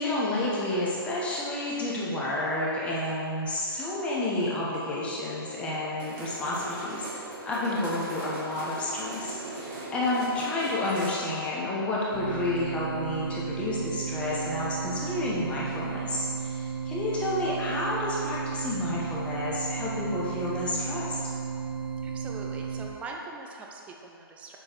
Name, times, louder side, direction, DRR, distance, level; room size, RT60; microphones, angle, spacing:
voice 1, 0.0-7.1 7.5-21.2, left 2 dB, 10° left, -6 dB, 0.9 m, -30 dB
sound 1, 6.0-11.1, right 2 dB, 30° right, 1.1 m, -40 dB
sound 2, 12.1-22.9, right 6 dB, 80° right, 0.9 m, -34 dB
voice 2, 22.0-24.6, right 3 dB, 10° right, 0 dB, 0.5 m, -42 dB
6.9 x 3.1 x 5.9 m, 2.6 s
hypercardioid pair, 150°, 13 cm